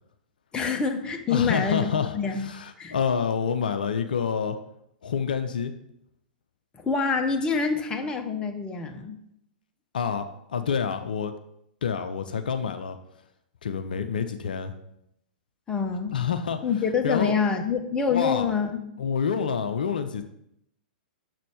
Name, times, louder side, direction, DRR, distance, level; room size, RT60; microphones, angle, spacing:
voice 1, 0.5-1.9 2.1-2.4 2.8-2.9 6.8-9.2 15.7-16.1 16.6-18.8, left 5 dB, 20° left, 4 dB, 0.9 m, -26 dB
voice 2, 1.3-4.6 5.0-5.7 9.9-11.3 11.8-13.0 13.6-14.7 16.1-16.6 17.0-17.4 18.1-18.5 19.0-20.2, left 6 dB, 70° left, 8 dB, 0.5 m, -27 dB
6.3 x 4.2 x 6.3 m, 0.77 s
figure-of-eight pair, 105°, 5 cm